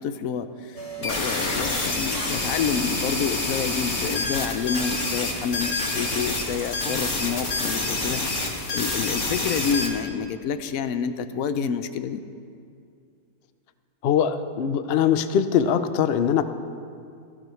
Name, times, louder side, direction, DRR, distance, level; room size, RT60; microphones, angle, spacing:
voice 1, 0.0-8.4 8.7-12.2, left 6 dB, 70° left, 11 dB, 0.9 m, -28 dB
sound 1, 0.7-7.9, right 6 dB, 25° left, 1.4 m, -46 dB
sound 2, 1.0-9.9, left 2 dB, 45° left, 1.9 m, -27 dB
voice 2, 14.0-16.4, left 8 dB, 85° left, 10 dB, 0.5 m, -22 dB
16.5 x 15.0 x 3.2 m, 2.3 s
omnidirectional pair, 1.8 m